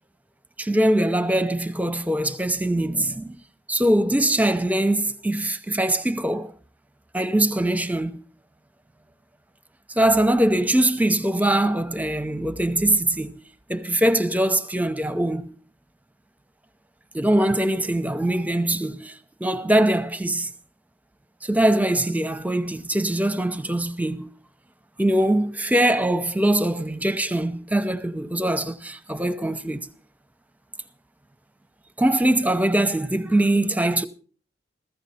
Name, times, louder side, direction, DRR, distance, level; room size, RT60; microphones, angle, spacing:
voice 1, 0.6-3.4 3.7-6.5 7.1-8.2 10.0-13.4 13.7-15.6 17.1-19.1 19.4-20.5 21.4-24.3 25.0-29.9 32.0-34.1, right 1 dB, 10° right, 0.7 m, -22 dB
15.0 x 14.5 x 4.3 m
head